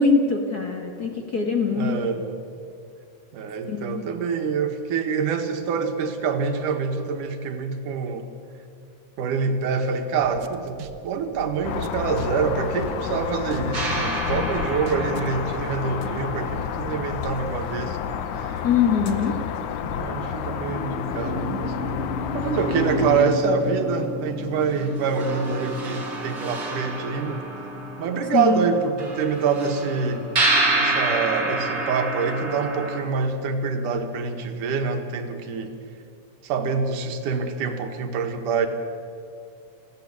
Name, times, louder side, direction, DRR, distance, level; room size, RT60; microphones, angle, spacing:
voice 1, 0.0-2.0 3.7-4.0 18.6-19.3 28.3-28.7, left 5 dB, 40° left, 2 dB, 1.6 m, -22 dB
voice 2, 1.3-2.3 3.3-8.3 9.2-18.6 19.0-19.4 19.8-21.8 22.3-27.4 28.0-30.3 30.7-35.7 36.4-38.7, right 5 dB, 80° right, 6 dB, 3.0 m, -26 dB
sound 1, 10.2-13.2 13.5-15.4, right 8 dB, 65° right, 1.8 m, -40 dB
sound 2, 11.6-23.3, left 8 dB, 75° left, 2.4 m, -30 dB
sound 3, 13.7-18.6 20.1-20.2 20.6-33.0, right 1 dB, 35° right, 4.1 m, -29 dB
19.5 x 15.0 x 9.7 m, 2.4 s
omnidirectional pair, 3.6 m